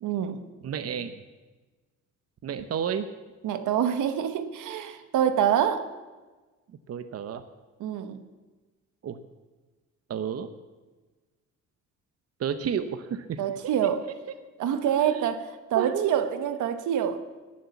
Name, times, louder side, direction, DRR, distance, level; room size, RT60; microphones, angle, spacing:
voice 1, 0.0-0.4 3.4-5.8 7.8-8.2 13.4-14.0 14.6-17.2, right 9 dB, 80° right, 10 dB, 1.2 m, -26 dB
voice 2, 0.6-1.2 2.4-3.1 6.9-7.4 9.0-9.2 10.1-10.5 12.4-13.4 15.0-15.3 15.7-16.3, right 8 dB, 55° right, 10 dB, 0.9 m, -31 dB
19.0 x 7.5 x 7.1 m, 1.3 s
cardioid pair, 90°, 30 cm